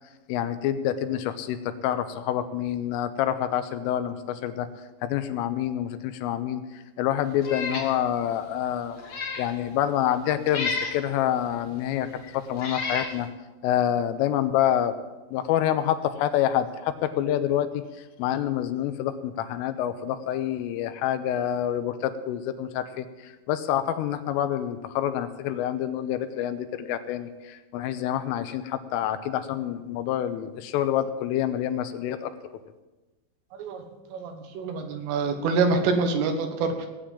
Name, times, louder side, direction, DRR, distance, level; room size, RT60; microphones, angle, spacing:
voice 1, 0.3-4.7 5.0-9.0 9.4-13.3 13.6-15.0 15.3-32.3, left 11 dB, 85° left, 9 dB, 3.4 m, -27 dB
Meow, 7.4-7.9 8.3-8.4 9.0-9.5 10.5-11.0 11.9-12.0 12.6-13.1, left 4 dB, 45° left, 2.2 m, -31 dB
voice 2, 33.5-33.8 34.1-36.9, right 4 dB, 75° right, 5 dB, 4.1 m, -26 dB
18.0 x 8.9 x 7.5 m, 1.1 s
omnidirectional pair, 5.8 m